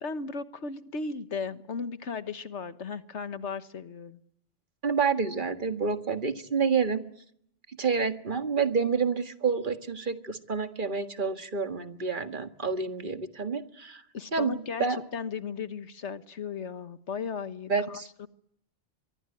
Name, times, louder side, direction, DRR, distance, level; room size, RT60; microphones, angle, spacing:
voice 1, 0.0-4.2 14.1-18.3, left 5 dB, 80° left, 12 dB, 1.6 m, -36 dB
voice 2, 4.8-7.0 7.8-14.0 14.3-15.0 17.7-18.1, right 5 dB, 45° right, 8 dB, 1.9 m, -28 dB
24.0 x 23.5 x 9.8 m, 0.69 s
omnidirectional pair, 1.2 m